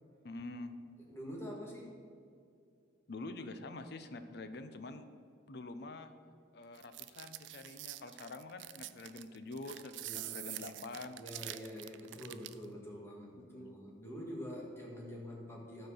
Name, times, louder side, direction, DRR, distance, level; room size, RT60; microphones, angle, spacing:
voice 1, 0.2-0.7 3.1-5.1 5.5-6.1 6.5-11.2 13.4-13.8, left 2 dB, 60° left, 9 dB, 0.6 m, -46 dB
voice 2, 1.1-1.9 10.0-10.6 11.2-15.9, equal, 15° left, -2 dB, 1.7 m, -46 dB
sound 1, 6.8-12.7, right 16 dB, 70° right, 0.3 m, -46 dB
12.5 x 4.4 x 6.4 m, 2.3 s
head